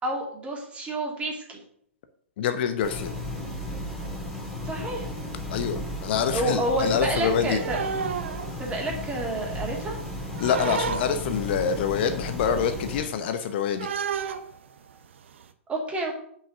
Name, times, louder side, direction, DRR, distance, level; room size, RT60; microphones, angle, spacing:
voice 1, 0.0-1.6 4.6-5.1 6.3-7.8 8.6-10.0 15.7-16.2, right 2 dB, 15° right, -1 dB, 2.5 m, -29 dB
voice 2, 2.4-3.1 5.5-7.6 10.4-13.9, left 7 dB, 50° left, 9 dB, 0.8 m, -26 dB
sound 1, 2.8-13.0, left 1 dB, ahead, 3.0 m, -34 dB
sound 2, 6.9-9.3 9.5-11.5 12.0-12.1 12.4-15.4, right 6 dB, 65° right, 0.8 m, -32 dB
5.8 x 5.7 x 6.7 m, 0.65 s
figure-of-eight pair, 110°, 7 cm